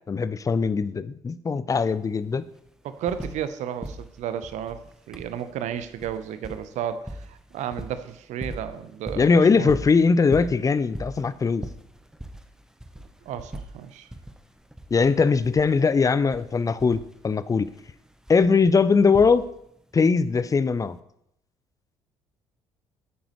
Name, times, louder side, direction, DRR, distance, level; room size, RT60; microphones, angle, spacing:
voice 1, 0.1-2.5 9.2-11.6 14.9-17.7 18.3-19.4 19.9-21.0, left 5 dB, 25° left, 15 dB, 0.6 m, -21 dB
sound 1, 1.7-1.8 2.1-3.5 3.8-19.8 20.8-20.9, right 1 dB, 5° right, 1.0 m, -40 dB
voice 2, 2.8-9.3 9.6-9.8 13.3-14.1, right 9 dB, 60° right, 12 dB, 0.9 m, -33 dB
12.5 x 8.9 x 3.2 m, 0.77 s
hypercardioid pair, 55°, 14 cm